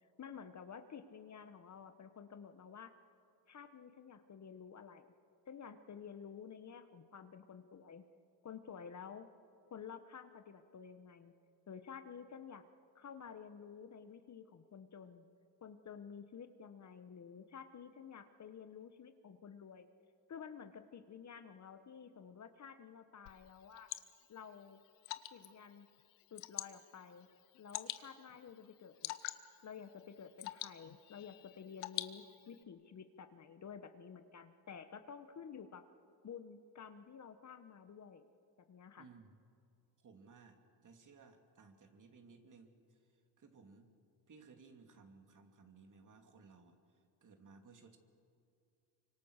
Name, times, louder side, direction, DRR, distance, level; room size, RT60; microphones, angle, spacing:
voice 1, 0.0-2.9 3.5-5.1 5.5-8.0 8.4-9.3 9.7-11.3 11.7-12.6 12.9-15.2 15.6-19.9 20.3-23.9 24.3-24.8 25.3-25.9 26.3-27.3 27.6-29.1 29.6-35.8 36.2-38.3 38.7-39.0, left 7 dB, 35° left, 9 dB, 1.2 m, -51 dB
Water / Drip, 23.3-32.6, left 16 dB, 90° left, 1.1 m, -48 dB
voice 2, 39.0-39.4 40.0-43.9 44.3-48.0, right 4 dB, 40° right, 5 dB, 2.9 m, -60 dB
25.5 x 24.5 x 6.6 m, 2.5 s
cardioid pair, 100°, 48 cm